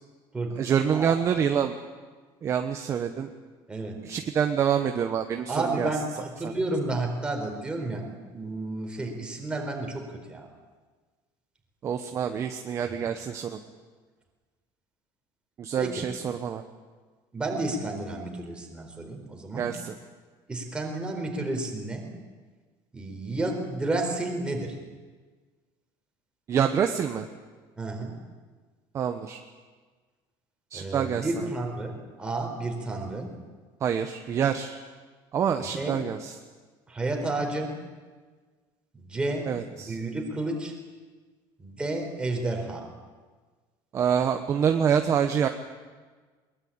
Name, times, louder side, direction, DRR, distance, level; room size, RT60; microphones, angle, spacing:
voice 1, 0.6-1.7 2.4-3.3 4.0-5.9 6.4-6.5 11.8-13.6 15.6-16.6 19.6-19.9 26.5-27.3 28.9-29.4 30.7-31.3 33.8-34.8 35.3-36.3 39.5-40.0 43.9-45.5, right 8 dB, 30° right, 6 dB, 1.1 m, -26 dB
voice 2, 5.5-10.5 12.8-12.9 15.8-16.0 17.3-19.7 20.5-22.1 22.9-24.8 27.8-28.1 30.7-33.3 35.6-36.0 36.9-37.8 38.9-40.7 41.6-42.9, right 2 dB, 10° right, 2 dB, 4.1 m, -31 dB
22.5 x 22.0 x 8.8 m, 1.4 s
cardioid pair, 170°, 10 cm